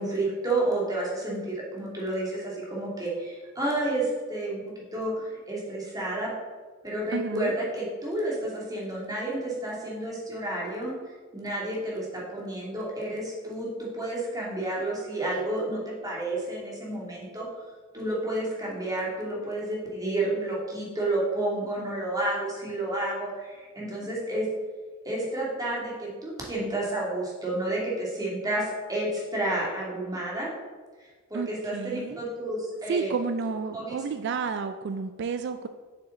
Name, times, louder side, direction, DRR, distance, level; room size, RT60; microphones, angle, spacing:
voice 1, 0.0-4.6 4.9-6.3 6.8-10.9 11.3-17.5 17.9-24.5 25.0-30.5 31.0-33.1 33.7-34.2, right 1 dB, 20° right, -5 dB, 2.2 m, -30 dB
voice 2, 7.1-7.5 31.3-32.2 32.9-35.7, right 5 dB, 60° right, 9 dB, 0.4 m, -31 dB
7.9 x 6.9 x 3.7 m, 1.4 s
head